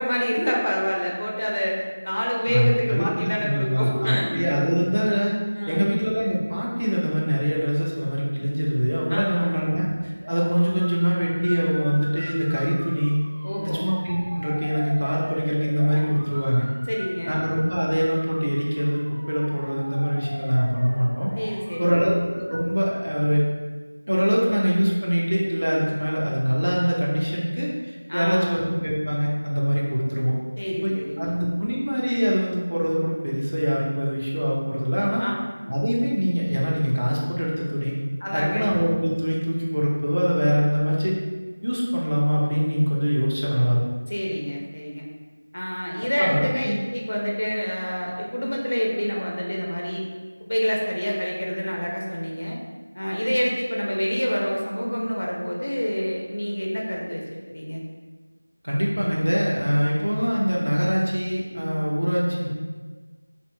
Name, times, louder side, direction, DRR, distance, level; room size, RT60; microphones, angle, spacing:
voice 1, 0.0-4.4 5.5-6.0 9.1-9.6 13.4-13.9 16.9-17.4 21.4-22.1 28.1-28.6 30.6-31.3 35.2-35.3 38.2-38.7 44.1-45.0 45.5-50.0 50.5-52.6 52.9-57.8, equal, 45° left, -2 dB, 0.5 m, -27 dB
voice 2, 2.5-5.4 5.7-13.2 13.6-16.7 17.2-21.3 21.8-23.4 24.1-30.4 30.8-35.2 35.7-38.0 38.3-41.1 41.6-43.8 46.2-46.8 58.6-62.5, equal, 60° right, -4 dB, 0.8 m, -23 dB
sound 1, 10.2-22.7, equal, 30° right, 0.5 m, -40 dB
2.9 x 2.5 x 3.2 m, 1.4 s
figure-of-eight pair, 175°, 0 cm